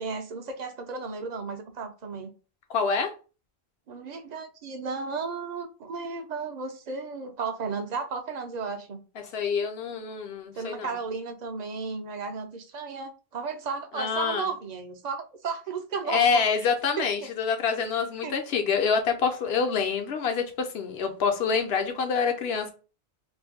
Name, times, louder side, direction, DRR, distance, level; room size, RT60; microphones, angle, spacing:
voice 1, 0.0-2.3 3.9-9.0 10.5-16.7 17.0-17.1 18.2-18.3, right 4 dB, 50° right, 0.6 m, -34 dB
voice 2, 2.7-3.1 9.3-11.0 13.9-14.5 16.1-22.7, left 5 dB, 75° left, 0.9 m, -26 dB
2.6 x 2.6 x 3.5 m
omnidirectional pair, 1.1 m